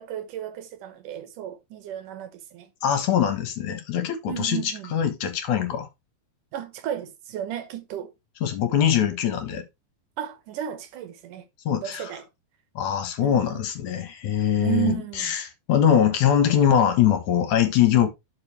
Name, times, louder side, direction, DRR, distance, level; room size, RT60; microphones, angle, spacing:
voice 1, 0.0-2.7 4.3-4.9 6.5-8.1 10.2-11.5 11.8-12.2 13.2-13.6 14.6-15.3, right 11 dB, 70° right, 2.4 m, -33 dB
voice 2, 2.8-5.9 8.4-9.6 11.7-12.1 12.8-18.1, left 9 dB, 65° left, 2.5 m, -22 dB
11.5 x 5.5 x 3.2 m
omnidirectional pair, 4.1 m